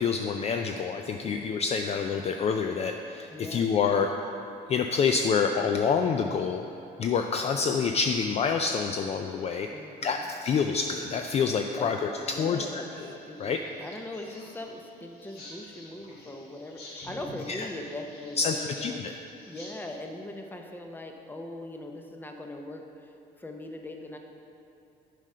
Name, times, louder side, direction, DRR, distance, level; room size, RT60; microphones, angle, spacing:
voice 1, 0.0-4.1 4.7-6.6 7.0-9.7 10.0-13.1 13.4-13.6 17.5-17.7 18.4-19.1, left 6 dB, 40° left, 4 dB, 0.4 m, -27 dB
voice 2, 3.3-3.7 9.7-10.3 11.7-12.9 13.2-19.0 19.5-24.2, left 1 dB, 10° left, 3 dB, 0.7 m, -40 dB
sound 1, 12.9-19.9, left 1 dB, 70° left, 1.8 m, -48 dB
7.4 x 5.0 x 5.5 m, 2.9 s
cardioid pair, 110°, 17 cm